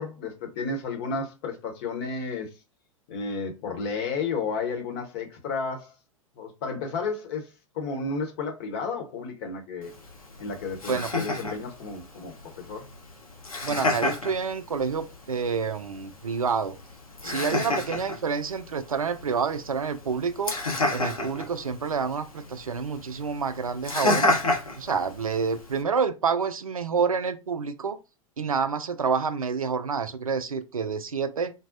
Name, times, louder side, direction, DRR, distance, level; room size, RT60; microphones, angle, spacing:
voice 1, 0.0-2.5 3.1-6.0 6.4-9.9 10.4-12.9 17.2-17.6, left 4 dB, 45° left, 0.9 m, -32 dB
Laughter, 9.8-25.8, left 2 dB, 80° left, 0.9 m, -31 dB
voice 2, 13.6-16.7 17.2-20.6 20.9-24.4 24.8-28.0 28.4-31.5, right 5 dB, 80° right, 0.4 m, -28 dB
3.8 x 2.0 x 2.5 m
figure-of-eight pair, 95°, 18 cm